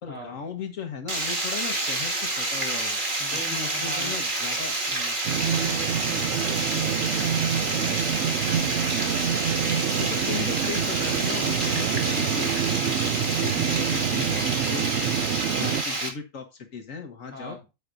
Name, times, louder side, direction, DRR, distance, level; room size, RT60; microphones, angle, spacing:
voice 1, 0.0-3.0 3.3-4.8 6.0-6.2 10.0-17.6, left 5 dB, 85° left, 5 dB, 1.8 m, -37 dB
Water, 1.1-16.1, right 2 dB, 40° right, 2.1 m, -28 dB
voice 2, 3.2-4.3 4.9-5.1 5.4-8.0 15.6-15.9 17.3-17.6, equal, 10° left, -3 dB, 4.7 m, -41 dB
sound 1, 5.3-15.8, right 9 dB, 70° right, 0.9 m, -27 dB
9.4 x 8.2 x 2.6 m, 0.26 s
omnidirectional pair, 1.3 m